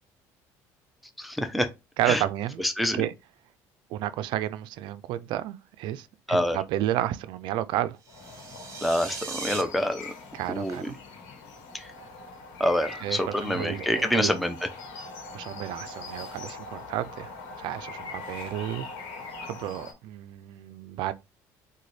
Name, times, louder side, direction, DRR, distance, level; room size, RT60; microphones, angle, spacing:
voice 1, 1.2-1.7 2.0-2.2 2.6-3.0 6.3-6.6 8.8-10.1 10.5-10.9 11.7-11.9 12.6-14.7, equal, ahead, 0.5 m, -26 dB
voice 2, 2.0-2.6 2.9-3.1 3.9-8.0 10.3-11.0 13.0-14.3 15.3-17.3 17.6-18.9 19.4-21.1, right 13 dB, 70° right, 0.4 m, -31 dB
sound 1, 8.0-9.6, right 6 dB, 40° right, 0.9 m, -38 dB
sound 2, 8.1-19.9, left 3 dB, 80° left, 1.1 m, -42 dB
3.8 x 2.2 x 3.2 m
supercardioid pair, 85°, 8 cm